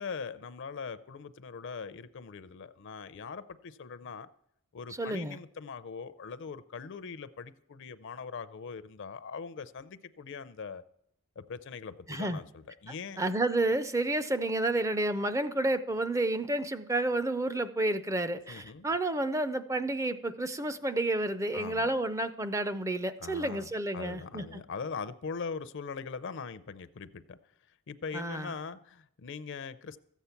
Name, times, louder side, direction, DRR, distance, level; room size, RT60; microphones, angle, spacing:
voice 1, 0.0-4.3 4.7-10.8 11.4-13.2 18.5-18.9 21.5-21.9 23.2-27.4 27.9-30.0, left 5 dB, 55° left, 0.5 m, -41 dB
voice 2, 5.0-5.4 12.1-12.4 13.2-24.6 28.1-28.5, right 2 dB, 15° right, 0.4 m, -30 dB
14.0 x 8.2 x 5.8 m
head